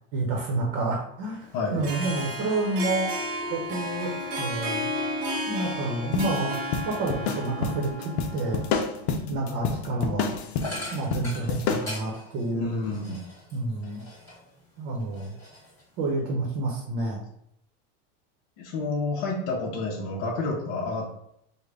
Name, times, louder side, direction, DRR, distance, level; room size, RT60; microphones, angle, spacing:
voice 1, 0.1-3.1 3.5-4.1 4.4-4.9 5.5-6.6 6.8-8.6 9.3-10.4 10.9-12.7 13.5-14.0 14.8-15.3 16.0-17.2, right 2 dB, 45° right, -1 dB, 0.8 m, -29 dB
Harp, 1.6-9.0, equal, 25° right, 0.5 m, -33 dB
sound 1, 6.1-12.0, left 5 dB, 90° left, 0.5 m, -29 dB
sound 2, 10.6-14.6 15.0-16.1, left 1 dB, 10° left, 1.1 m, -41 dB
voice 2, 12.5-13.2 18.6-21.1, left 3 dB, 50° left, -3 dB, 0.7 m, -29 dB
3.7 x 2.1 x 3.3 m, 0.74 s
supercardioid pair, 160°, 31 cm